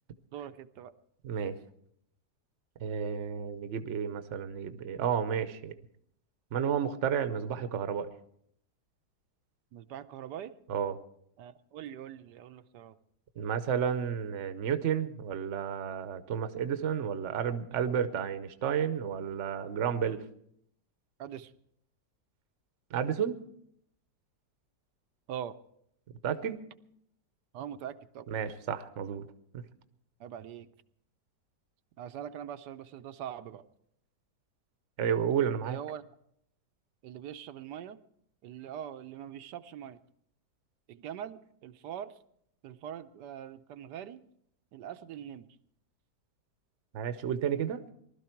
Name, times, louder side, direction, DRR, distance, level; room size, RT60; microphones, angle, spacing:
voice 1, 0.3-0.9 9.7-10.5 11.4-13.0 21.2-21.5 25.3-25.6 27.5-28.3 30.2-30.7 32.0-33.6 35.6-36.0 37.0-38.0 38.4-40.0 40.9-42.1 42.6-44.3 44.7-45.6, right 10 dB, 80° right, 12 dB, 1.3 m, -42 dB
voice 2, 1.2-1.5 2.8-5.7 6.5-8.1 10.7-11.0 13.4-20.2 22.9-23.4 26.2-26.6 28.3-29.3 29.5-29.6 35.0-35.8 46.9-47.8, right 8 dB, 55° right, 11 dB, 1.0 m, -31 dB
19.5 x 12.5 x 4.5 m, 0.71 s
omnidirectional pair, 1.8 m